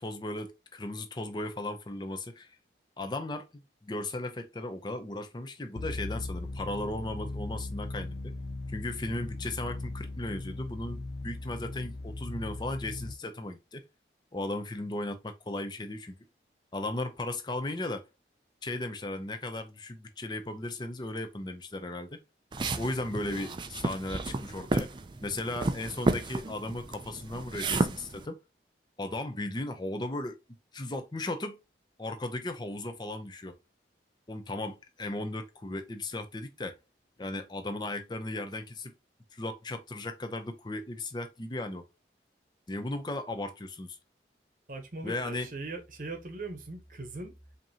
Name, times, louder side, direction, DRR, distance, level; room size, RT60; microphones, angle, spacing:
voice 1, 0.0-2.6 3.0-8.3 8.7-13.8 14.3-16.2 16.7-18.1 18.6-22.2 22.8-24.9 25.2-28.4 29.0-30.4 30.7-31.6 32.0-33.6 34.3-36.7 37.2-38.9 39.3-41.9 42.7-44.0 45.0-45.5, left 2 dB, 25° left, 0.6 m, -36 dB
sound 1, 5.8-13.1, left 2 dB, 75° left, 0.5 m, -38 dB
sound 2, 22.5-28.2, right 2 dB, 25° right, 0.3 m, -32 dB
voice 2, 44.7-47.3, right 2 dB, 50° right, 0.9 m, -40 dB
5.1 x 2.8 x 2.8 m
head